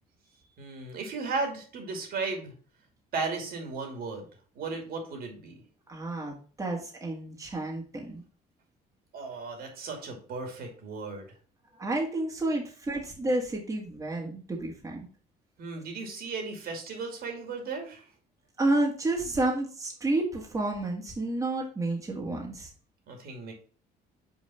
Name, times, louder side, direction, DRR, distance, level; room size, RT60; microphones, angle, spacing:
voice 1, 0.6-2.5 3.1-4.3 4.5-5.6 9.1-11.3 15.6-18.0 23.1-23.5, right 4 dB, 65° right, 3 dB, 2.5 m, -35 dB
voice 2, 5.9-8.2 11.7-15.1 18.6-22.7, right 2 dB, 20° right, -1 dB, 1.8 m, -30 dB
5.5 x 4.7 x 5.7 m, 0.40 s
cardioid pair, 110°, 17 cm